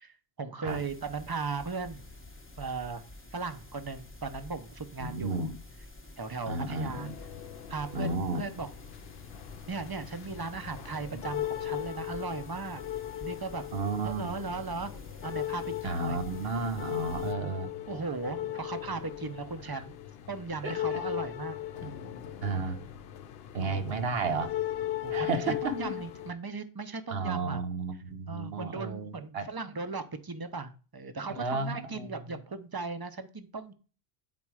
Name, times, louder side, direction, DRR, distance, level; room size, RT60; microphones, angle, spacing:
voice 1, 0.0-2.0 2.6-3.0 3.3-5.5 6.2-7.1 7.7-8.7 9.7-12.8 13.2-13.6 14.0-14.9 15.2-16.2 17.9-20.0 20.3-22.3 23.6-24.0 25.0-27.6 28.3-33.7, right 4 dB, 30° right, 0.4 m, -37 dB
sound 1, 0.7-17.3, left 2 dB, 15° left, 0.6 m, -50 dB
voice 2, 5.0-5.6 6.5-7.1 7.9-8.4 11.1-11.2 13.7-14.3 15.8-17.7 19.7-19.8 20.6-21.0 22.4-22.9 23.5-24.5 25.1-25.8 27.1-29.5 31.3-32.4, right 3 dB, 60° right, 1.1 m, -33 dB
sound 2, 6.9-26.3, left 13 dB, 65° left, 0.8 m, -38 dB
8.8 x 4.2 x 4.8 m
omnidirectional pair, 1.2 m